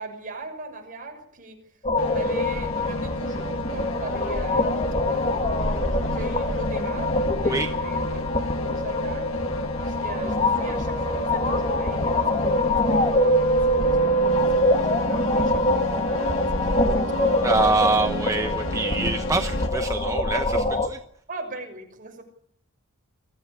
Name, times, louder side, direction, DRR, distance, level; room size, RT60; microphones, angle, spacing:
voice 1, 0.0-1.7 2.0-8.2 8.5-9.3 9.8-12.6 12.9-17.3 21.3-22.2, right 2 dB, 40° right, 3 dB, 6.4 m, -39 dB
sound 1, 1.8-20.9, left 1 dB, 30° left, 2.1 m, -24 dB
sound 2, 2.0-19.7, left 2 dB, 65° left, 1.7 m, -34 dB
voice 2, 17.4-21.0, right 3 dB, 15° right, 7 dB, 0.8 m, -25 dB
23.5 x 14.5 x 9.9 m, 0.65 s
head